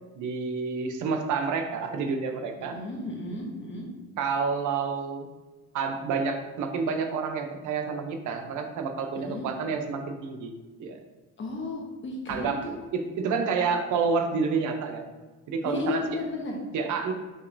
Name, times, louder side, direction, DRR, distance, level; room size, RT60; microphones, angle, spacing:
voice 1, 0.2-2.8 4.2-5.3 5.7-10.5 10.8-11.0 12.3-12.6 12.9-15.0 15.5-16.0 16.7-17.1, right 5 dB, 75° right, 5 dB, 0.6 m, -29 dB
voice 2, 2.6-3.9 9.2-9.5 11.4-12.7 15.6-16.6, left 2 dB, 40° left, 0 dB, 1.1 m, -34 dB
6.2 x 2.9 x 2.6 m, 1.3 s
cardioid pair, 90°, 30 cm